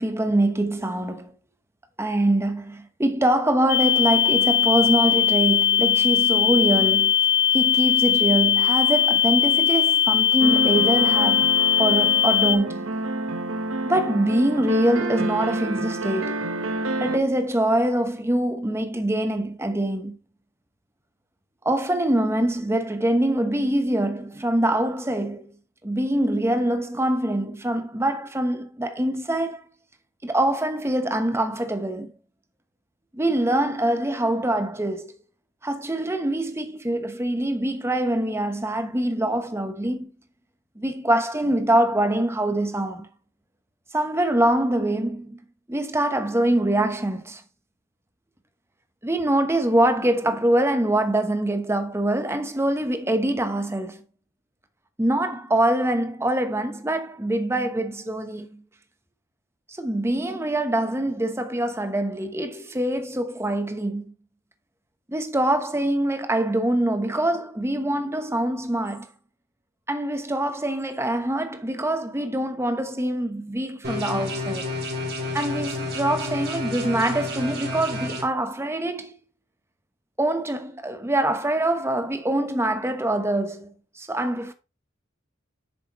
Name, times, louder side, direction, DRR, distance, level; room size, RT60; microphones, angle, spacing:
voice 1, 0.0-1.3 2.0-7.1 7.5-11.5 11.8-12.9 13.9-16.3 17.0-20.2 21.6-25.5 25.8-29.6 30.2-32.1 33.1-35.1 35.6-40.1 40.8-43.1 43.9-45.4 45.7-47.4 49.0-54.0 55.0-58.6 59.7-64.1 65.1-69.1 69.9-74.7 75.3-79.1 80.2-84.5, right 1 dB, 15° right, 1.0 m, -24 dB
sound 1, 3.7-12.5, left 9 dB, 55° left, 2.1 m, -20 dB
sound 2, 10.4-17.2, right 2 dB, 85° right, 1.2 m, -28 dB
sound 3, 73.8-78.2, left 2 dB, 55° right, 2.8 m, -30 dB
8.3 x 6.8 x 3.1 m
head